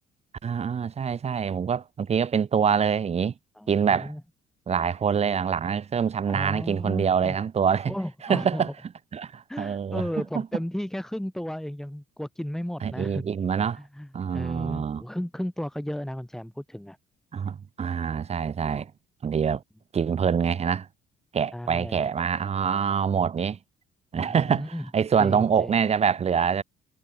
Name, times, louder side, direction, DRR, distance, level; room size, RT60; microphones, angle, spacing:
voice 1, 0.4-3.3 3.7-4.1 4.7-8.0 8.2-8.7 9.1-10.5 12.8-13.8 14.1-15.0 17.3-18.9 19.2-19.6 19.9-20.9 21.3-23.6 24.1-26.6, right 7 dB, 40° right, 4.1 m, -25 dB
voice 2, 3.6-4.2 6.2-7.4 7.9-8.7 9.5-13.2 13.9-14.1 14.3-17.0 21.5-22.0 24.1-24.8 25.2-25.7, equal, 5° left, 4.2 m, -34 dB
cardioid pair, 110°, 17 cm